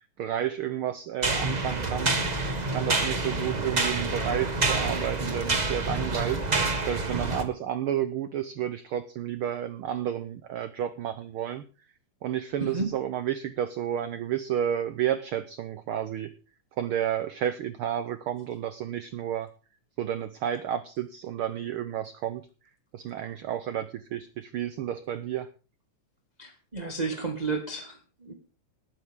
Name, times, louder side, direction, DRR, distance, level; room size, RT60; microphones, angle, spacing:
voice 1, 0.2-2.4 2.7-11.6 12.2-16.3 16.8-19.5 20.0-22.4 22.9-25.5, right 10 dB, 85° right, 12 dB, 1.2 m, -31 dB
sound 1, 1.2-7.4, right 3 dB, 45° right, 0.5 m, -27 dB
voice 2, 12.6-12.9 26.4-28.3, right 4 dB, 20° right, 2 dB, 1.2 m, -32 dB
19.5 x 8.9 x 3.6 m, 0.34 s
omnidirectional pair, 3.3 m